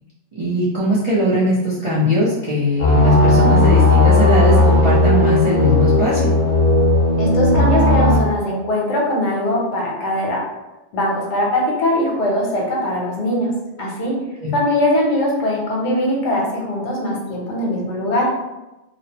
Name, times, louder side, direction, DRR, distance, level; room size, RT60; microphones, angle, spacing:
voice 1, 0.4-6.3 14.4-14.5, left 1 dB, 50° right, -10 dB, 0.3 m, -19 dB
sound 1, 2.8-8.2, left 2 dB, 50° left, 0.6 m, -15 dB
voice 2, 7.2-10.5 10.9-14.2 14.5-18.3, left 1 dB, 75° left, -2 dB, 1.0 m, -21 dB
2.4 x 2.0 x 2.7 m, 1.0 s
omnidirectional pair, 1.2 m